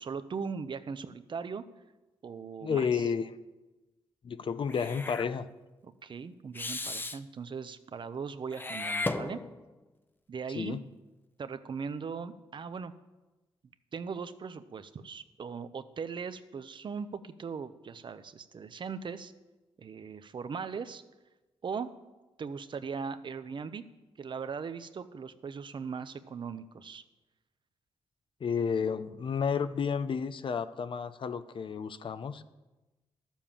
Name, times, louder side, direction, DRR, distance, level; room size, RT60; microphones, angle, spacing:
voice 1, 0.0-1.7 2.2-3.1 5.8-9.5 10.3-10.8 11.4-12.9 13.9-19.3 19.8-21.0 21.6-22.0 22.4-23.9 24.2-27.0, right 5 dB, 50° right, 12 dB, 0.8 m, -39 dB
voice 2, 2.6-3.4 4.2-5.5 10.5-10.8 28.4-32.4, left 6 dB, 55° left, 12 dB, 0.7 m, -31 dB
Meow / Hiss, 4.7-5.3 6.6-7.2 8.5-9.8, left 2 dB, 20° left, 0.7 m, -35 dB
12.0 x 7.3 x 7.3 m, 1.1 s
cardioid pair, 75°, 10 cm